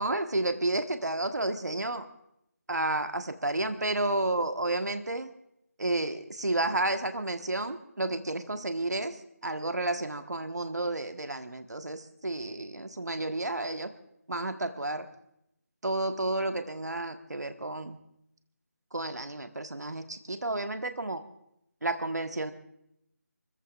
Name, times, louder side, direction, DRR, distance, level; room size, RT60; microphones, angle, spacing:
voice 1, 0.0-2.0 2.7-5.3 5.8-13.9 14.3-15.1 15.8-18.0 18.9-21.2 21.8-22.5, right 2 dB, 90° right, 7 dB, 1.4 m, -31 dB
28.0 x 15.0 x 2.5 m, 0.80 s
figure-of-eight pair, 165°, 9 cm